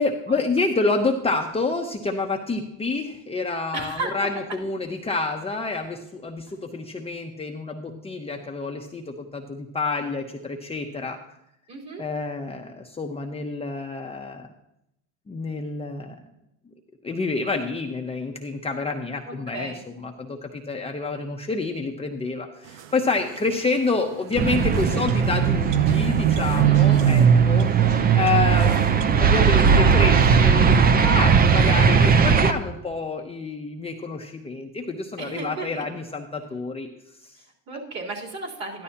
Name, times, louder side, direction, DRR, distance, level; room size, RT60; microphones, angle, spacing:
voice 1, 0.0-11.2 12.0-14.5 15.3-16.2 17.0-19.7 20.0-27.7 28.1-36.9 37.2-37.3, left 3 dB, 15° left, 2 dB, 0.8 m, -28 dB
voice 2, 3.7-4.3 11.7-12.0 19.3-19.9 26.6-27.1 35.2-35.8 37.4-38.8, right 2 dB, 40° right, -3 dB, 3.6 m, -34 dB
sound 1, 24.3-24.4 24.7-29.4, right 9 dB, 90° right, 0.7 m, -20 dB
sound 2, 24.4-32.5, right 5 dB, 25° right, 0.6 m, -19 dB
12.5 x 11.5 x 2.8 m, 0.82 s
supercardioid pair, 105°, 37 cm